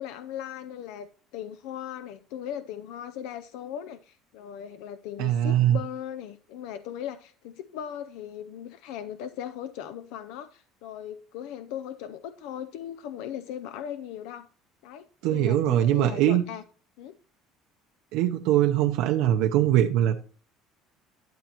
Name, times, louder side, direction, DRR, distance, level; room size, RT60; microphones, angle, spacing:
voice 1, 0.0-14.5 14.8-16.6 17.0-17.2, left 10 dB, 75° left, 12 dB, 0.5 m, -38 dB
voice 2, 5.2-5.8 15.2-16.4 18.1-20.2, right 12 dB, 70° right, 3 dB, 0.6 m, -22 dB
11.5 x 8.4 x 2.9 m, 0.41 s
cardioid pair, 155°, 0 cm